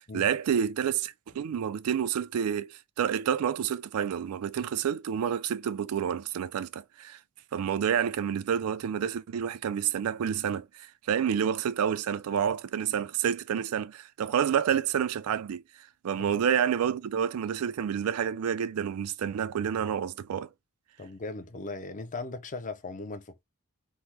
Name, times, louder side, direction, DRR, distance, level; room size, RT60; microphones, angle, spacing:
voice 1, 0.0-7.2 7.5-20.5, right 8 dB, 80° right, 0.3 m, -29 dB
voice 2, 21.0-23.4, left 3 dB, 35° left, 0.6 m, -38 dB
3.5 x 2.1 x 2.8 m
head